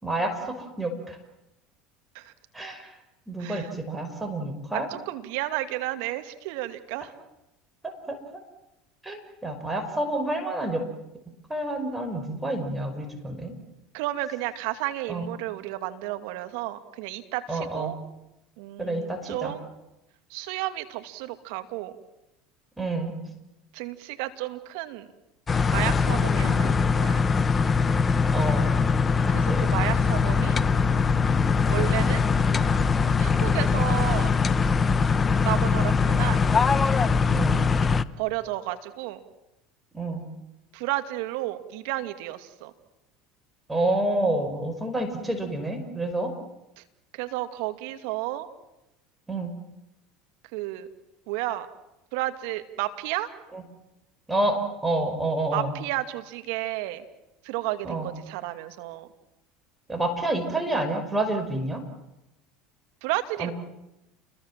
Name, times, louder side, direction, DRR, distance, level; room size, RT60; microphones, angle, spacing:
voice 1, 0.0-1.2 2.5-2.9 3.3-4.9 8.1-8.2 9.0-10.8 11.5-13.5 15.1-15.2 17.5-17.9 18.8-19.5 22.8-23.1 28.3-28.7 29.5-29.7 37.3-37.6 39.9-40.2 43.7-46.3 49.3-49.5 53.5-53.6 54.3-54.6 54.8-55.7 57.8-58.1 59.9-61.8 63.4-63.5, right 2 dB, 10° right, 6 dB, 5.4 m, -28 dB
voice 2, 3.4-3.7 4.7-7.1 13.9-18.0 18.6-19.7 20.3-21.9 23.7-25.1 25.7-27.2 29.3-30.6 31.7-32.3 33.2-34.3 35.4-36.5 38.2-39.2 40.7-42.7 46.8-46.9 47.1-48.5 50.5-50.9 51.3-51.7 52.1-53.3 55.5-57.1 57.4-59.1 63.0-63.5, right 16 dB, 70° right, 10 dB, 2.3 m, -32 dB
sound 1, 25.5-38.0, left 5 dB, 25° left, 1.1 m, -22 dB
29.0 x 22.0 x 7.5 m, 0.93 s
hypercardioid pair, 85°, 0 cm